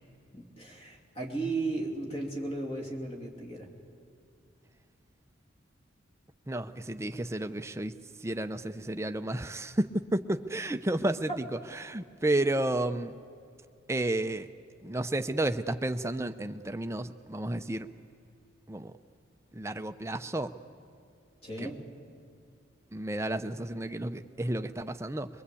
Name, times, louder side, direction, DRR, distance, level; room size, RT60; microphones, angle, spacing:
voice 1, 0.3-3.7 21.4-21.8, right 2 dB, 30° left, 1 dB, 2.8 m, -35 dB
voice 2, 6.5-7.9 8.2-11.3 11.8-13.1 13.9-14.5 14.8-17.9 18.7-18.9 19.5-20.5 21.6-21.7 22.9-25.3, right 1 dB, 15° right, 8 dB, 0.6 m, -31 dB
23.0 x 22.5 x 8.4 m, 2.4 s
head